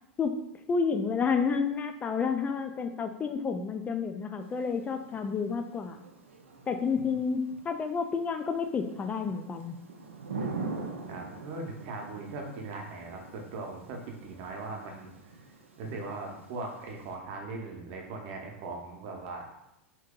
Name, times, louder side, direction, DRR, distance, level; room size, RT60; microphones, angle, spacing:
voice 1, 0.7-6.0 6.7-9.8, left 5 dB, 20° left, 6 dB, 0.3 m, -30 dB
Thunder / Rain, 4.4-17.1, right 4 dB, 90° right, 0.5 m, -44 dB
voice 2, 11.1-15.4 15.8-19.4, right 3 dB, 55° right, 1 dB, 0.8 m, -39 dB
2.9 x 2.7 x 3.6 m, 0.88 s
hypercardioid pair, 100°, 7 cm